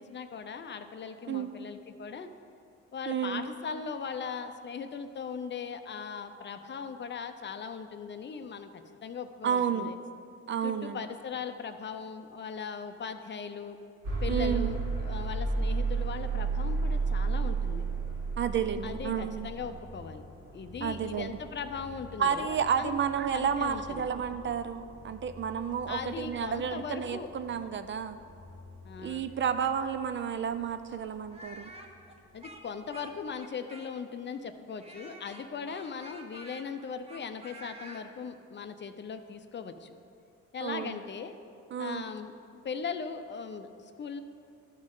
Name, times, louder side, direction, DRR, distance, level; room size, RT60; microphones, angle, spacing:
voice 1, 0.0-2.3 2.9-10.0 10.6-13.8 14.2-17.9 18.8-20.2 20.5-22.9 23.3-24.1 25.9-27.3 28.8-29.2 32.3-40.0 40.5-41.3 41.8-42.3 42.6-44.2, left 6 dB, 40° left, 8 dB, 0.5 m, -39 dB
voice 2, 3.1-3.4 9.4-9.9 10.5-11.0 14.3-14.7 18.4-19.5 20.8-21.4 22.2-28.2 29.0-31.7 40.6-41.0 41.7-42.0, right 7 dB, 40° right, 10 dB, 0.4 m, -31 dB
sound 1, 14.0-30.0, right 4 dB, 75° right, 2.1 m, -35 dB
Speech, 31.3-34.2 34.8-38.0, right 1 dB, 20° right, 0.9 m, -49 dB
12.5 x 5.3 x 3.8 m, 2.5 s
cardioid pair, 90°, 30 cm